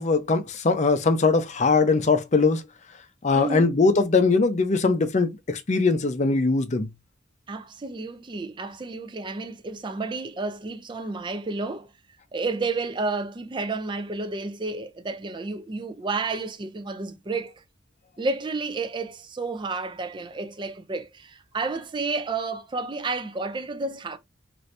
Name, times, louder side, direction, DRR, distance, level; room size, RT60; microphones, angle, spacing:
voice 1, 0.0-2.6 3.2-6.9, left 3 dB, 40° left, 0.5 m, -21 dB
voice 2, 3.3-3.8 7.5-11.9 12.3-17.6 18.2-24.2, right 3 dB, 25° right, 0.4 m, -31 dB
2.7 x 2.6 x 3.2 m
head